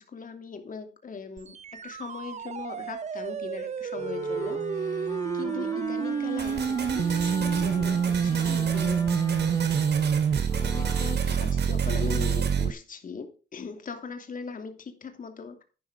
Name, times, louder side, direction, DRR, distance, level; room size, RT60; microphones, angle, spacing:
voice 1, 0.0-9.0 10.2-10.4 10.6-15.6, left 5 dB, 45° left, 7 dB, 2.7 m, -39 dB
sound 1, 1.4-12.7, right 7 dB, 35° right, 0.5 m, -27 dB
Wind instrument woodwind instrument, 3.9-11.3, left 1 dB, 15° left, 2.4 m, -40 dB
sound 2, 6.4-12.7, right 6 dB, 55° right, 3.0 m, -36 dB
11.0 x 10.0 x 3.6 m, 0.34 s
cardioid pair, 90°, 20 cm